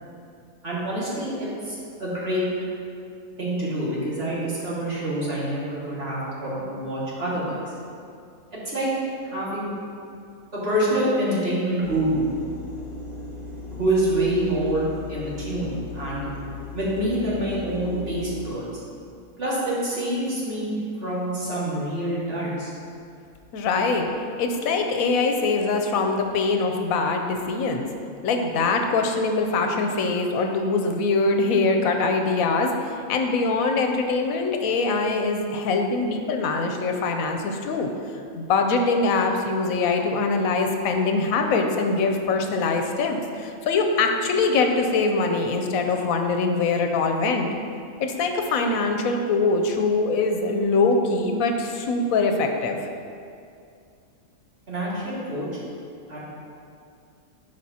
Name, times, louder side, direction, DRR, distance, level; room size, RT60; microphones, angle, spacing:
voice 1, 0.6-2.4 3.4-7.6 8.6-8.9 9.2-9.7 10.5-12.2 13.7-14.8 15.1-16.3 16.7-18.8 19.4-22.7 54.7-55.5 56.1-56.2, right 1 dB, 45° right, -8 dB, 2.2 m, -26 dB
sound 1, 11.8-18.5, left 3 dB, 45° left, 1.2 m, -37 dB
voice 2, 23.5-24.0 24.4-27.9 28.2-37.9 38.4-47.5 48.0-52.8, left 3 dB, 85° left, 4 dB, 1.1 m, -23 dB
12.0 x 4.9 x 2.8 m, 2.4 s
omnidirectional pair, 1.4 m